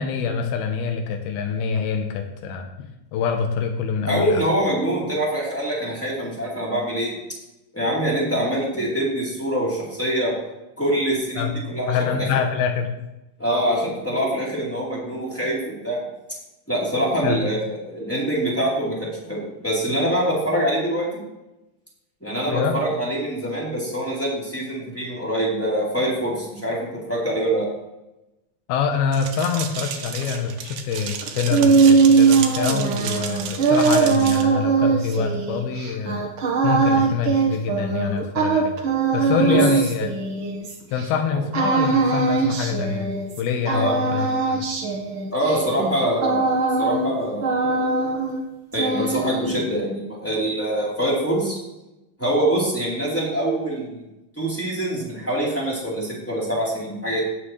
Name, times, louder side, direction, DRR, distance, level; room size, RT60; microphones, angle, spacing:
voice 1, 0.0-4.4 11.4-11.6 11.9-12.9 17.2-17.4 22.5-22.7 28.7-36.3 36.6-38.7 39.1-40.1 40.9-44.7, left 6 dB, 85° left, 4 dB, 2.8 m, -25 dB
voice 2, 4.0-7.1 7.7-10.3 10.8-12.2 13.4-16.0 16.7-21.2 22.2-27.7 39.3-39.6 43.7-44.0 45.3-47.9 48.7-51.6 52.2-54.0 54.4-57.2, right 1 dB, 5° left, -7 dB, 3.1 m, -24 dB
sound 1, 29.1-34.4, right 8 dB, 90° right, 3.0 m, -32 dB
sound 2, 31.2-41.1 41.5-43.4 43.7-47.2 47.4-48.4 48.7-49.7, right 4 dB, 70° right, 1.2 m, -21 dB
17.0 x 7.6 x 3.2 m, 0.96 s
omnidirectional pair, 4.3 m